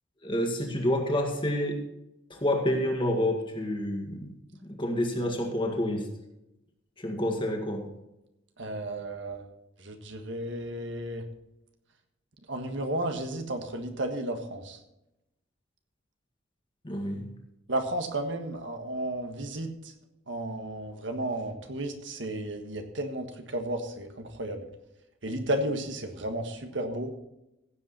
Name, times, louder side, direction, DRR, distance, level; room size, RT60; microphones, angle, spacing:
voice 1, 0.2-1.9 2.3-4.3 4.6-6.1 7.0-7.9 16.8-17.3, left 1 dB, 25° left, 3 dB, 2.0 m, -28 dB
voice 2, 8.6-9.4 9.8-11.3 12.5-14.8 17.7-19.9 20.3-24.7 25.2-27.1, right 1 dB, 70° right, 6 dB, 1.5 m, -33 dB
16.0 x 8.0 x 4.3 m, 0.89 s
head